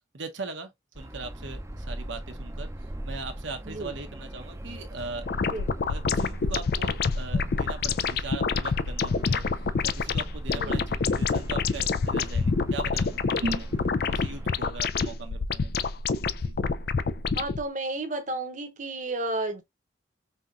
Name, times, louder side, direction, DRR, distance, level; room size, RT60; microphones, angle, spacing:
voice 1, 0.1-0.7 0.9-2.7 3.0-5.5 5.9-9.4 9.8-13.2 13.4-13.7 14.1-15.9 16.4-16.6, right 3 dB, 80° right, 1.1 m, -39 dB
sound 1, 0.9-14.5, right 1 dB, 15° right, 0.6 m, -41 dB
sound 2, 5.2-17.6, left 4 dB, 55° left, 0.4 m, -27 dB
voice 2, 17.4-19.6, right 2 dB, 40° right, 0.9 m, -32 dB
5.5 x 2.9 x 2.5 m
head